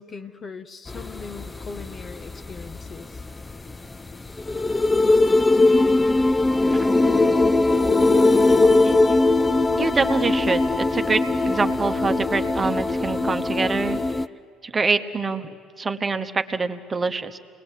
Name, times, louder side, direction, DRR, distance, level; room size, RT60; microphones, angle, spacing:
voice 1, 0.0-3.2, left 4 dB, 35° left, 10 dB, 1.1 m, -40 dB
sound 1, 0.9-14.3, left 2 dB, 20° left, 0.5 m, -20 dB
voice 2, 8.5-9.3 9.8-14.0 14.6-17.4, right 4 dB, 30° right, 8 dB, 1.2 m, -26 dB
28.0 x 20.0 x 8.3 m, 2.2 s
hypercardioid pair, 65°, 0 cm